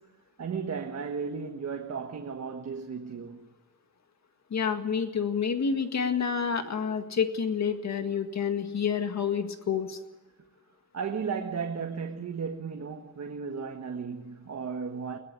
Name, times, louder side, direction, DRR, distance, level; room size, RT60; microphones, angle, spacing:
voice 1, 0.4-3.5 10.9-15.2, right 5 dB, 50° right, 1.5 m, -35 dB
voice 2, 4.5-10.0, left 6 dB, 50° left, 2.0 m, -28 dB
22.0 x 17.5 x 9.8 m
wide cardioid pair, 135°, 34 cm